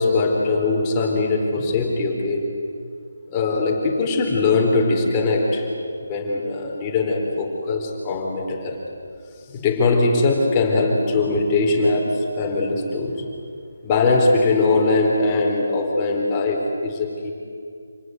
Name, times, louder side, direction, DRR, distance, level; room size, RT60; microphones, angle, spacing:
voice 1, 0.0-2.5 3.3-5.6 6.0-8.8 9.5-13.2 13.8-17.3, left 3 dB, 20° left, -1 dB, 4.2 m, -21 dB
28.0 x 19.0 x 9.5 m, 2.3 s
hypercardioid pair, 165°, 0 cm